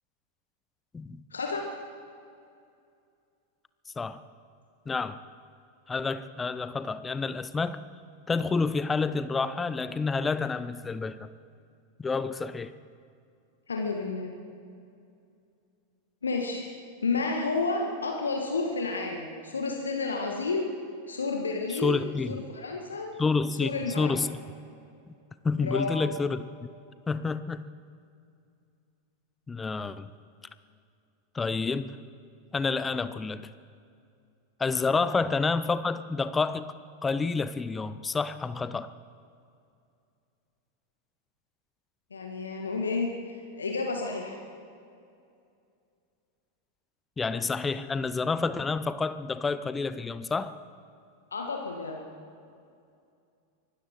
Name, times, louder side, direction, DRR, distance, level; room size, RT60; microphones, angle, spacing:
voice 1, 1.3-1.7 13.7-14.3 16.2-16.7 17.0-20.7 21.1-23.1 23.6-24.2 25.6-25.9 34.9-35.0 42.1-43.1 43.6-44.4 51.3-52.0, left 3 dB, 75° left, 1 dB, 1.7 m, -31 dB
voice 2, 4.9-5.2 5.9-7.8 8.3-11.3 12.0-12.7 21.7-22.4 23.2-24.4 25.1-25.2 25.4-26.5 27.1-27.7 29.5-30.1 31.3-32.0 32.5-33.5 34.6-36.7 37.0-38.9 47.2-50.5, left 4 dB, 15° left, 14 dB, 0.7 m, -29 dB
24.0 x 13.0 x 4.6 m, 2.5 s
figure-of-eight pair, 90°, 0 cm